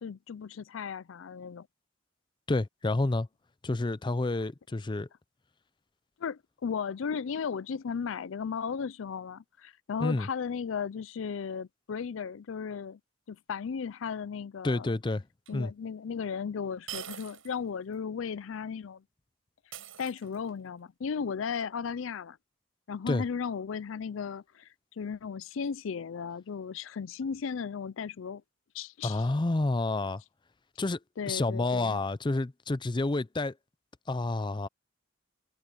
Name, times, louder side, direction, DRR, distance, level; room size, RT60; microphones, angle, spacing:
voice 1, 0.0-1.7 6.2-13.0 13.3-14.9 15.5-19.0 20.0-22.4 22.9-24.7 25.0-28.4 28.7-29.3 31.2-32.0, left 6 dB, 80° left, 0.4 m, -35 dB
voice 2, 2.5-3.3 3.6-5.1 10.0-10.3 14.6-15.2 15.5-15.7 23.1-23.2 29.0-30.2 30.8-31.0 31.3-33.5 34.1-34.7, left 2 dB, 25° left, 0.5 m, -29 dB
sound 1, 15.5-15.6 16.9-17.6 17.9-18.0 19.7-20.6, right 10 dB, 85° right, 7.0 m, -43 dB
head